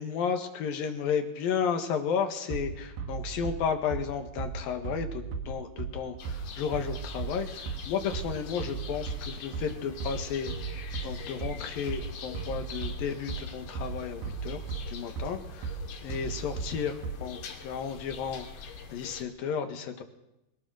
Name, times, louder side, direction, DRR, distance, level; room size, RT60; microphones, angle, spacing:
voice 1, 0.0-18.6 18.9-20.0, left 7 dB, 70° left, 6 dB, 3.4 m, -33 dB
Bass drum, 2.5-17.5, right 5 dB, 90° right, 4.0 m, -37 dB
sound 1, 6.2-19.2, left 5 dB, 85° left, 4.2 m, -44 dB
22.5 x 19.0 x 6.4 m, 0.89 s
omnidirectional pair, 4.3 m